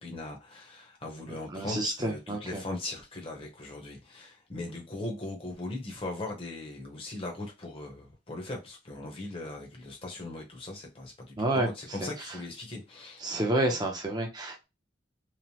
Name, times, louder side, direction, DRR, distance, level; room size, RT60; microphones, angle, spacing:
voice 1, 0.0-13.2, left 2 dB, 30° left, 0.8 m, -39 dB
voice 2, 1.5-2.6 11.4-11.7 12.0-12.1 13.2-14.7, right 1 dB, 20° right, 0.6 m, -29 dB
3.0 x 2.1 x 2.7 m
head